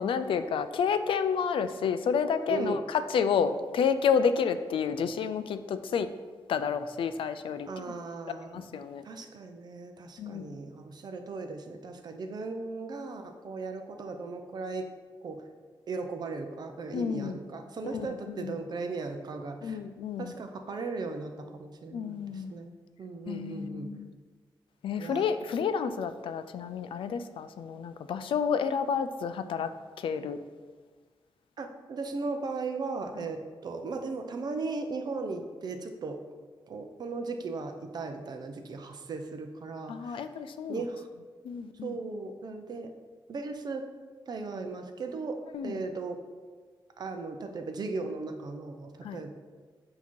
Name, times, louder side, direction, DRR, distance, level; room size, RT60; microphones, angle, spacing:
voice 1, 0.0-6.1 6.5-8.0 8.5-9.0 10.2-10.6 16.9-17.4 17.8-18.6 19.6-20.3 21.9-22.5 23.3-24.1 24.8-29.7 30.0-30.4 39.9-40.8 41.4-42.0 45.5-45.8 49.0-49.2, left 6 dB, 80° left, 11 dB, 0.4 m, -30 dB
voice 2, 2.5-2.8 7.7-8.7 9.0-14.9 15.2-15.4 15.9-19.8 20.2-23.9 25.0-25.3 31.6-36.2 36.7-40.3 40.7-41.1 41.8-42.9 43.3-43.8 44.3-45.4 45.6-46.2 47.0-49.3, right 3 dB, 50° right, 6 dB, 0.6 m, -37 dB
8.0 x 2.8 x 4.5 m, 1.5 s
wide cardioid pair, 155°, 9 cm